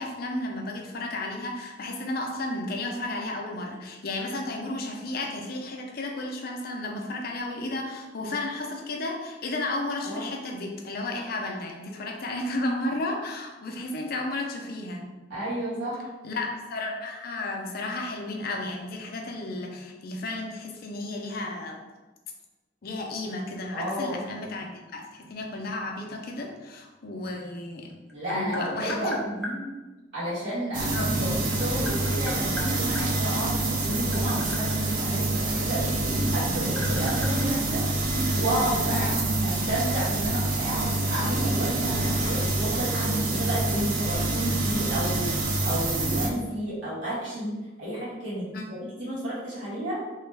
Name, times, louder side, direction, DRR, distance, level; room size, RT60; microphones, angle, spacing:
voice 1, 0.0-15.1 16.2-21.8 22.8-27.9 28.3-29.2 30.9-31.1 38.9-39.2 48.5-48.7, left 2 dB, 55° left, 1 dB, 0.5 m, -33 dB
voice 2, 15.3-16.0 23.7-24.2 28.1-29.6 30.1-36.0 36.3-37.8 38.3-39.1 39.4-45.3 45.6-47.5 47.8-50.0, right 1 dB, 90° right, -10 dB, 1.5 m, -31 dB
Tap, 27.7-29.6 30.9-33.1 33.8-36.0 36.3-38.3, left 1 dB, 5° left, 0.5 m, -39 dB
sound 1, 30.7-46.3, right 2 dB, 45° right, 0.5 m, -26 dB
3.0 x 2.2 x 3.3 m, 1.2 s
head